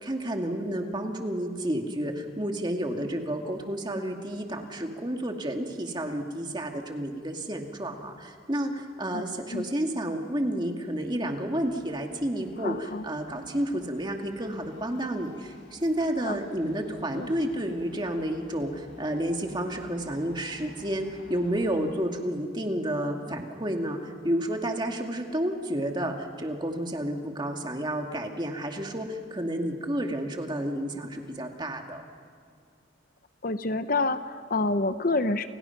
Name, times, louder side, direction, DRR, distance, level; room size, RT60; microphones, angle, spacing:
voice 1, 0.0-32.0, right 1 dB, 25° right, 3 dB, 2.3 m, -31 dB
sound 1, 11.5-21.9, left 1 dB, 80° left, 7.8 m, -53 dB
voice 2, 12.6-13.0 16.2-16.4 17.1-17.3 33.4-35.5, left 2 dB, 45° left, 10 dB, 0.8 m, -28 dB
29.5 x 29.0 x 5.9 m, 2.2 s
head